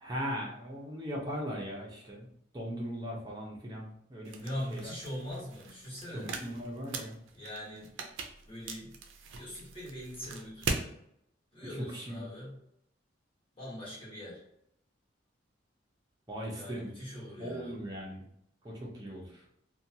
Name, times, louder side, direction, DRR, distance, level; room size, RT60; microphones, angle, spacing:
voice 1, 0.0-2.3 2.5-4.9 6.1-7.2 11.8-12.3 16.3-16.9 17.4-18.3 18.6-19.4, equal, 20° right, -2 dB, 0.6 m, -39 dB
sound 1, 4.2-10.9, right 4 dB, 75° right, 0.4 m, -40 dB
voice 2, 4.4-6.3 7.3-7.9 8.5-8.9 9.3-10.9 11.5-12.5 13.6-14.4 16.5-17.7, equal, 25° left, -7 dB, 1.1 m, -42 dB
2.6 x 2.2 x 2.7 m, 0.74 s
head